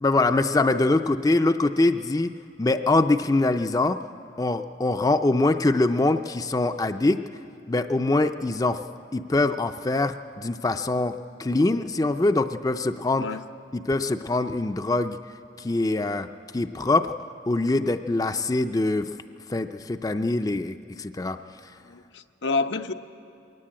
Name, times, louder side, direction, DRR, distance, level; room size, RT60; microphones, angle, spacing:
voice 1, 0.0-2.3 2.6-4.0 4.4-7.2 7.7-8.8 9.1-13.3 13.7-15.2 15.6-16.3 16.5-17.1 17.5-19.1 19.5-21.4, left 2 dB, 20° left, 8 dB, 0.4 m, -23 dB
voice 2, 21.8-22.9, left 3 dB, 85° left, 7 dB, 0.8 m, -28 dB
21.5 x 17.5 x 8.8 m, 2.5 s
head